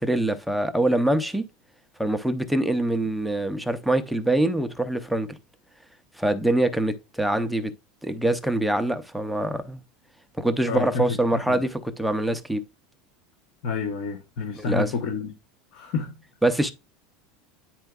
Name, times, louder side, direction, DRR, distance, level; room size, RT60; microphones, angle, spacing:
voice 1, 0.0-1.4 2.0-5.4 6.2-7.7 8.0-9.8 10.4-12.6 14.6-14.9 16.4-16.7, right 1 dB, ahead, 0.5 m, -24 dB
voice 2, 10.6-11.6 13.6-15.3 15.7-16.1, left 5 dB, 55° left, 1.1 m, -29 dB
9.8 x 4.4 x 2.3 m
supercardioid pair, 150°, 0 cm